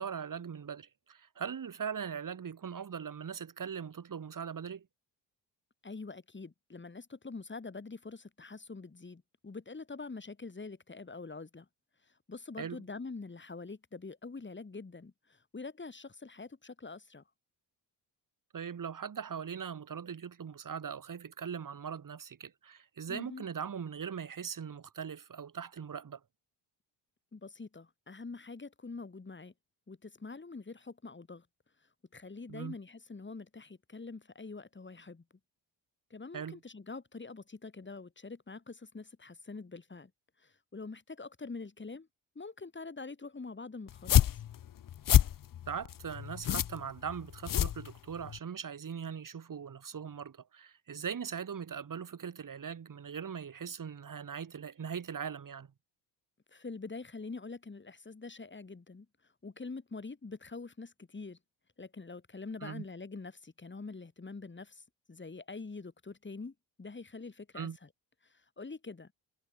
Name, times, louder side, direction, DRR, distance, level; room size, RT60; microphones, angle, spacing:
voice 1, 0.0-4.9 12.6-12.8 18.5-26.2 32.5-32.8 36.3-36.6 45.7-55.7 62.6-62.8 67.5-67.8, right 7 dB, 45° right, 3.1 m, -40 dB
voice 2, 5.8-11.7 12.3-17.2 23.1-23.5 27.3-29.5 29.9-31.5 32.1-35.2 36.1-40.1 40.4-42.1 42.4-44.2 56.5-59.1 59.4-61.4 61.8-67.9 68.2-69.1, left 3 dB, 25° left, 5.3 m, -45 dB
sound 1, 43.9-48.4, left 11 dB, 45° left, 0.8 m, -28 dB
cardioid pair, 85°, 45 cm